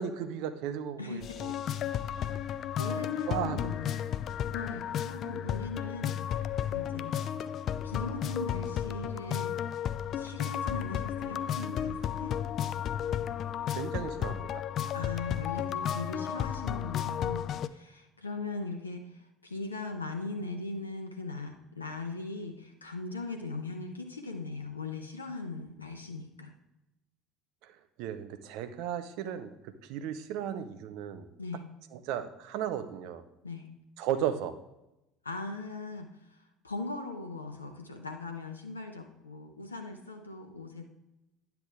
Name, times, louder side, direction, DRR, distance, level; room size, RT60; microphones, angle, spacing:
voice 1, 0.0-1.5 3.3-3.8 13.7-14.6 27.6-27.7 28.0-31.3 31.9-33.2 34.0-34.6, right 9 dB, 60° right, 10 dB, 0.7 m, -35 dB
voice 2, 1.0-1.6 2.8-4.0 4.5-6.4 6.7-7.1 7.8-9.6 10.1-12.4 14.9-26.5 31.4-31.6 33.4-33.7 35.2-36.4 36.6-40.9, left 3 dB, 85° left, 4 dB, 0.6 m, -39 dB
sound 1, 1.2-17.7, left 9 dB, 45° left, 0.4 m, -33 dB
10.0 x 6.9 x 3.5 m, 0.92 s
figure-of-eight pair, 65°, 0 cm